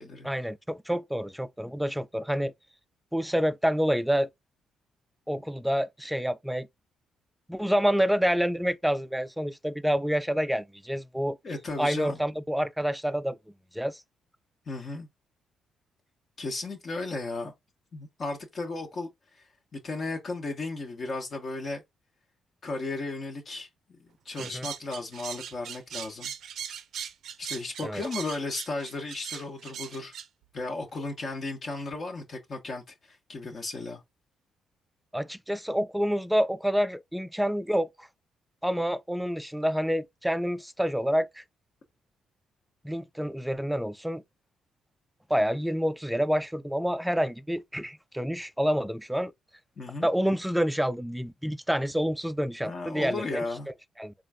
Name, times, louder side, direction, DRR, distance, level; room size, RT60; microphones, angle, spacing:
voice 1, 0.2-2.5 3.1-4.3 5.3-6.7 7.5-11.4 11.8-13.4 13.7-14.0 24.4-24.7 27.8-28.0 35.1-38.1 38.6-41.4 42.8-44.2 45.3-49.3 50.0-53.4 54.0-54.1, equal, 5° right, 0.3 m, -28 dB
voice 2, 11.4-12.2 14.7-15.1 16.4-17.5 17.9-21.8 22.6-26.3 27.4-30.1 30.5-34.0 49.8-50.1 52.6-53.7, left 3 dB, 45° left, 0.9 m, -35 dB
sound 1, 24.4-30.3, right 8 dB, 70° right, 0.5 m, -39 dB
3.8 x 2.4 x 3.4 m
cardioid pair, 90°, 0 cm